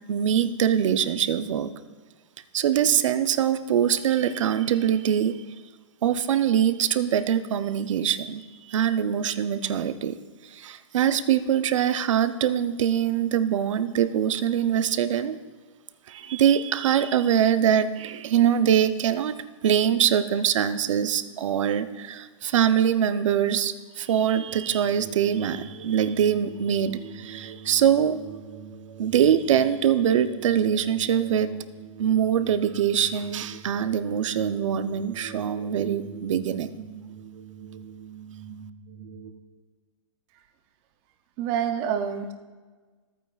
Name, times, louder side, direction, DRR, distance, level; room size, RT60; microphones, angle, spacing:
voice 1, 0.1-1.7 2.5-5.4 6.0-10.2 10.4-15.4 16.1-19.3 19.6-28.2 29.0-31.5 32.0-36.8, right 9 dB, 65° right, 12 dB, 0.6 m, -23 dB
sound 1, 24.5-39.3, right 7 dB, 85° right, 1.3 m, -44 dB
voice 2, 41.4-42.3, right 8 dB, 20° right, 7 dB, 0.4 m, -27 dB
14.5 x 9.1 x 2.3 m, 1.4 s
hypercardioid pair, 165°, 17 cm